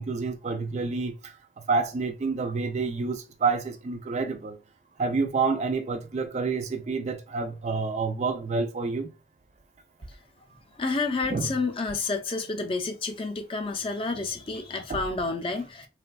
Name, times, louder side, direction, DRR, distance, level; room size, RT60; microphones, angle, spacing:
voice 1, 0.0-4.6 5.0-9.1 11.3-11.5 14.9-15.0, right 4 dB, 40° right, 0.3 m, -28 dB
voice 2, 10.8-15.9, left 3 dB, 30° left, 0.4 m, -29 dB
3.3 x 2.2 x 2.3 m
head